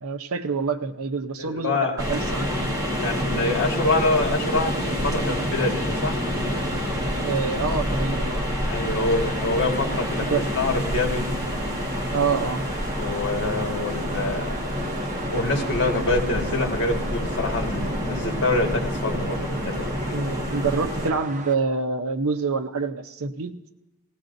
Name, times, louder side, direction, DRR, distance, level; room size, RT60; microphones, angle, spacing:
voice 1, 0.0-2.8 7.2-8.4 10.2-10.4 11.2-11.3 12.1-12.6 20.1-23.6, right 4 dB, 70° right, 8 dB, 0.7 m, -27 dB
voice 2, 1.4-2.0 3.0-6.2 8.7-11.3 13.0-14.6 15.3-20.3, left 2 dB, 55° left, 1 dB, 1.8 m, -26 dB
sound 1, 2.0-21.1, equal, 15° right, 1.5 m, -28 dB
sound 2, 3.9-21.6, right 3 dB, 35° right, 0.6 m, -38 dB
19.5 x 16.0 x 2.6 m, 1.0 s
head